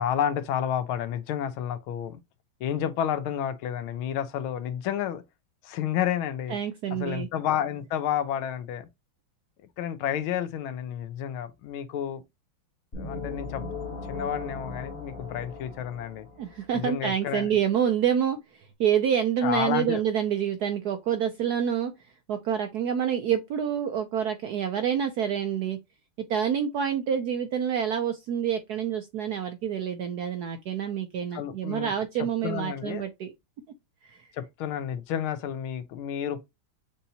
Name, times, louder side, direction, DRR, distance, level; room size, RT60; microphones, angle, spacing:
voice 1, 0.0-2.2 2.6-5.2 5.6-6.6 7.0-8.8 9.8-12.2 12.9-13.6 14.0-16.3 16.7-17.6 19.4-20.0 31.3-31.9 32.2-33.0 34.3-36.5, left 9 dB, 85° left, 1.5 m, -30 dB
voice 2, 6.5-7.3 16.4-21.9 22.3-25.8 26.2-33.3 34.0-34.3, right 8 dB, 75° right, 0.9 m, -27 dB
sound 1, 12.9-16.7, left 4 dB, 35° left, 1.1 m, -38 dB
6.8 x 2.7 x 2.7 m
omnidirectional pair, 2.3 m